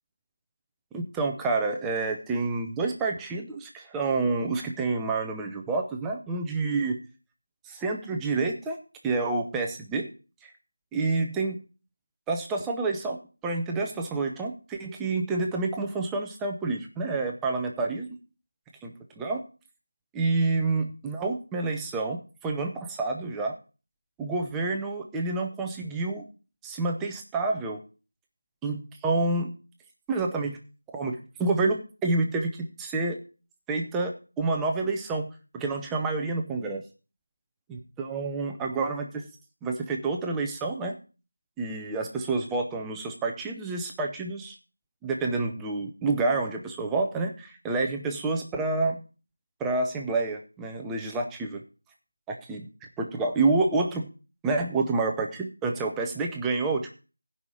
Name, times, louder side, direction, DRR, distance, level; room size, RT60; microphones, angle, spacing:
voice 1, 0.9-7.0 7.7-8.8 9.0-10.1 10.4-10.5 10.9-11.6 12.3-18.1 18.8-19.4 20.1-23.5 24.2-26.2 26.6-27.8 28.6-29.5 30.1-30.6 30.9-33.2 33.7-36.8 37.7-39.2 39.6-40.9 41.6-44.5 45.0-49.0 49.6-51.6 52.3-52.7 53.0-54.1 54.4-56.9, right 3 dB, 5° right, 1 dB, 0.5 m, -28 dB
15.5 x 5.5 x 4.7 m, 0.35 s
figure-of-eight pair, 180°, 0 cm